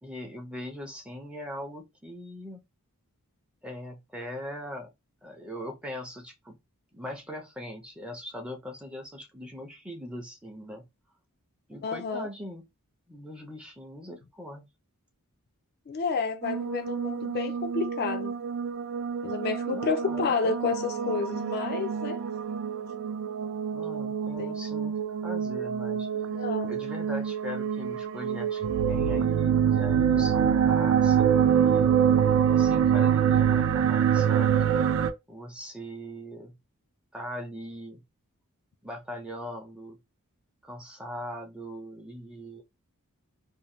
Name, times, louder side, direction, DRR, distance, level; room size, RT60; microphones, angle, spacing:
voice 1, 0.0-2.6 3.6-4.9 5.2-6.6 6.9-10.9 11.7-12.6 13.1-14.7 19.7-20.5 23.7-26.1 26.7-32.0 32.5-34.7 35.3-36.6 37.1-38.0 38.8-40.0 40.6-42.6, equal, 5° right, 0.6 m, -40 dB
voice 2, 11.8-12.3 15.9-18.3 19.2-22.2 24.4-24.5 26.2-26.7, left 5 dB, 45° left, 0.4 m, -30 dB
sound 1, 16.4-35.1, right 8 dB, 60° right, 0.3 m, -25 dB
2.7 x 2.1 x 3.1 m
head